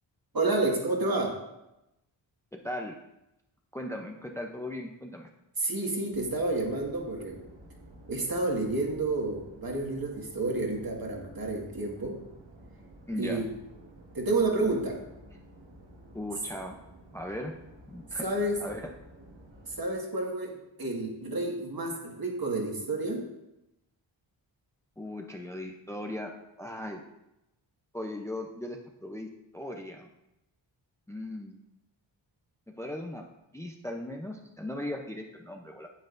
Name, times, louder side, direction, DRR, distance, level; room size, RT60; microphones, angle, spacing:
voice 1, 0.3-1.4 5.6-7.4 8.1-12.2 13.1-13.5 14.1-15.0 18.2-18.6 19.7-23.2, right 2 dB, 45° right, -1 dB, 2.0 m, -30 dB
voice 2, 2.5-3.0 3.7-5.3 13.1-13.4 16.1-16.8 17.1-17.5 17.9-18.2 18.6-18.9 25.0-26.3 26.6-27.0 27.9-30.1 31.1-31.6 32.7-33.2 33.5-35.9, left 1 dB, 5° left, 2 dB, 0.7 m, -38 dB
sound 1, 6.1-19.8, right 1 dB, 65° right, 1.9 m, -52 dB
9.2 x 7.8 x 2.6 m, 0.90 s
cardioid pair, 55°, 47 cm